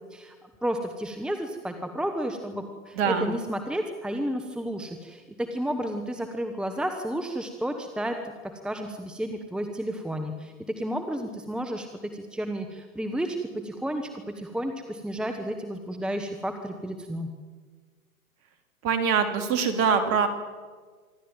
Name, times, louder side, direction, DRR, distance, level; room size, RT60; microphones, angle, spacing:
voice 1, 0.1-8.2 8.6-17.3, equal, ahead, 5 dB, 1.3 m, -32 dB
voice 2, 2.9-3.3 18.8-20.3, right 6 dB, 30° right, 8 dB, 3.0 m, -23 dB
25.5 x 12.5 x 8.9 m, 1.5 s
hypercardioid pair, 120°, 43 cm